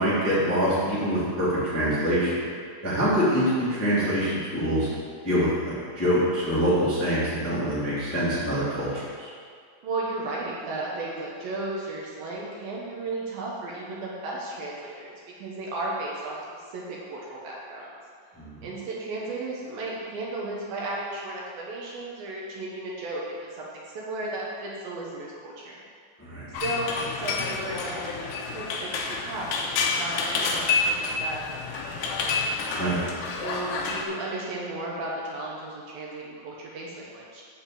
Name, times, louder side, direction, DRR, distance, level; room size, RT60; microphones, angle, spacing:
voice 1, 0.0-2.4 2.8-4.9 5.2-9.3 18.4-18.6 26.2-26.5 32.7-33.1, equal, 5° left, -10 dB, 1.3 m, -25 dB
voice 2, 3.0-3.3 9.8-16.4 16.7-17.9 18.6-25.8 26.6-32.5 33.4-37.4, right 2 dB, 70° right, -4 dB, 2.5 m, -35 dB
sound 1, 26.5-34.0, left 4 dB, 85° left, 1.8 m, -29 dB
9.2 x 4.3 x 7.4 m, 2.1 s
omnidirectional pair, 4.8 m